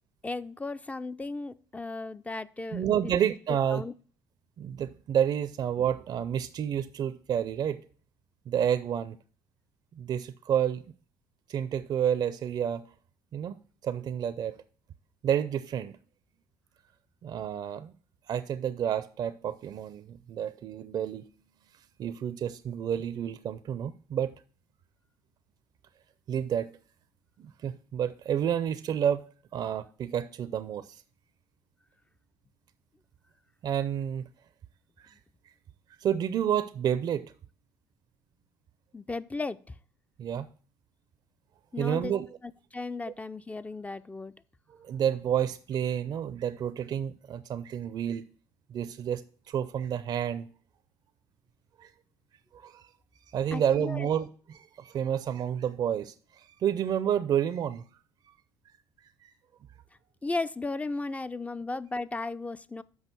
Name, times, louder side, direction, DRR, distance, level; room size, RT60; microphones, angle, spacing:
voice 1, 0.2-3.1 3.7-3.9 38.9-39.7 41.7-42.1 42.4-44.3 53.5-54.1 60.2-62.8, left 3 dB, 15° left, 0.4 m, -35 dB
voice 2, 2.7-3.8 4.6-7.8 8.5-9.2 9.9-10.8 11.5-12.8 13.3-13.6 13.8-14.6 15.2-16.0 17.2-17.9 18.3-21.3 22.0-24.3 26.3-26.7 27.4-29.2 29.5-31.0 33.6-34.3 35.0-35.2 36.0-37.3 40.2-40.5 41.8-42.3 44.7-48.2 48.7-49.2 49.5-50.5 51.8-51.9 52.5-52.9 53.3-57.8 59.2-59.3, right 9 dB, 50° right, 0.5 m, -30 dB
6.3 x 5.3 x 6.7 m
supercardioid pair, 70°, 9 cm